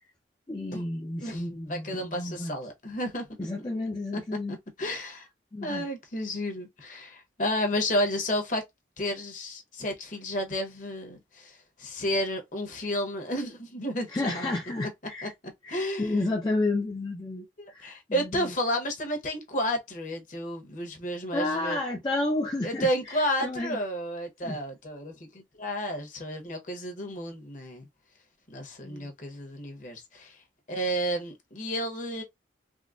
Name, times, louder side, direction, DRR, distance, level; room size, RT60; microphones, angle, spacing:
voice 1, 0.5-2.5 3.4-4.6 5.5-5.9 14.1-15.3 15.6-18.5 21.3-23.8 24.4-24.6 28.8-29.1, left 2 dB, 20° left, 0.4 m, -31 dB
voice 2, 1.7-3.3 3.6-3.7 4.1-4.2 4.5-5.3 5.6-8.6 9.0-14.5 15.2-15.3 15.7-16.2 17.6-21.8 22.6-27.9 28.5-30.4 30.7-32.2, equal, 40° left, 0.9 m, -32 dB
3.6 x 2.1 x 2.4 m
head